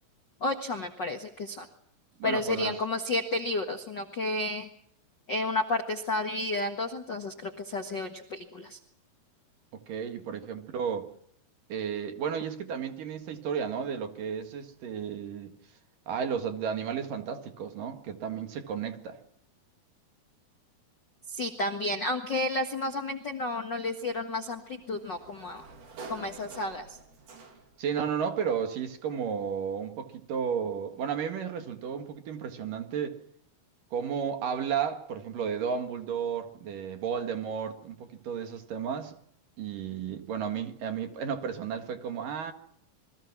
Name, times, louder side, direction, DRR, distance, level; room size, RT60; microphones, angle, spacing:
voice 1, 0.4-1.7 2.2-4.7 5.3-8.8 21.3-25.6 26.1-27.0, left 2 dB, 50° left, 1.3 m, -31 dB
voice 2, 2.2-2.8 9.7-11.1 11.7-15.6 16.1-19.2 27.8-33.2 33.9-39.2 39.6-42.5, right 7 dB, 65° right, 3.3 m, -33 dB
Sliding door, 24.0-27.9, right 4 dB, 80° right, 5.7 m, -48 dB
28.0 x 23.0 x 6.1 m
omnidirectional pair, 4.4 m